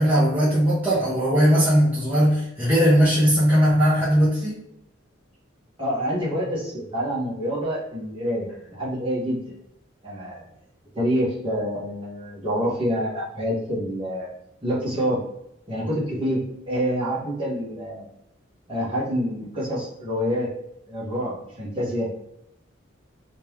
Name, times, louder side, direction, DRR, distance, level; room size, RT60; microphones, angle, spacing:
voice 1, 0.0-4.6, equal, 10° right, -11 dB, 1.0 m, -19 dB
voice 2, 5.8-9.5 10.0-10.4 10.9-14.3 14.6-15.2 15.7-18.1 18.7-20.5 20.9-22.1, equal, 25° right, -8 dB, 1.4 m, -27 dB
3.2 x 3.1 x 3.5 m, 0.79 s
head